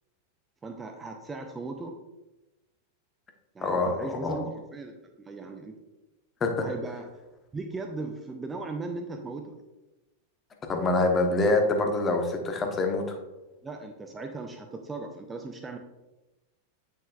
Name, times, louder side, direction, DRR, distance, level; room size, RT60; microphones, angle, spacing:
voice 1, 0.6-2.0 3.5-5.7 6.6-7.1 7.5-9.6 13.6-15.8, right 3 dB, 15° right, 4 dB, 0.6 m, -37 dB
voice 2, 3.6-4.4 6.4-6.7 10.7-13.2, left 2 dB, 20° left, 3 dB, 1.1 m, -25 dB
8.3 x 6.6 x 2.5 m, 1.0 s
figure-of-eight pair, 90°, 0 cm